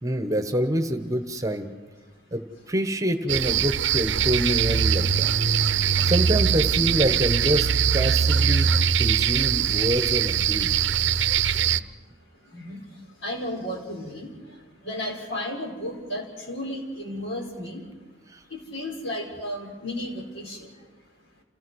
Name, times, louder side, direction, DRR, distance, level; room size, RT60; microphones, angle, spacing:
voice 1, 0.0-1.7 2.3-2.4 2.7-5.3 6.0-10.8 18.3-18.4, equal, 15° right, 7 dB, 1.1 m, -26 dB
sound 1, 3.3-11.8, right 7 dB, 75° right, 0.6 m, -22 dB
voice 2, 13.2-14.3 14.8-17.8 18.5-20.6, left 1 dB, 90° left, 0 dB, 4.8 m, -33 dB
28.5 x 16.0 x 6.3 m, 1.2 s
head